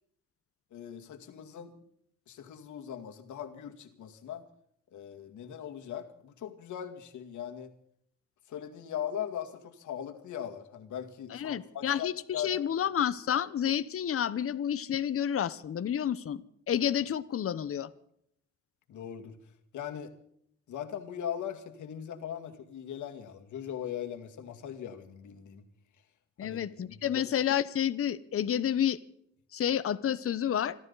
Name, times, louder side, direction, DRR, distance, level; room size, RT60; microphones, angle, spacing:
voice 1, 0.7-1.8 2.3-4.4 4.9-7.7 8.5-12.7 18.9-19.3 19.7-20.1 20.7-25.6 26.4-26.6 26.9-27.0, left 9 dB, 75° left, 5 dB, 2.2 m, -39 dB
voice 2, 11.3-16.4 16.7-17.9 26.4-29.0 29.5-30.8, left 9 dB, 45° left, 14 dB, 1.0 m, -30 dB
26.5 x 12.5 x 4.0 m, 0.69 s
cardioid pair, 90°, 30 cm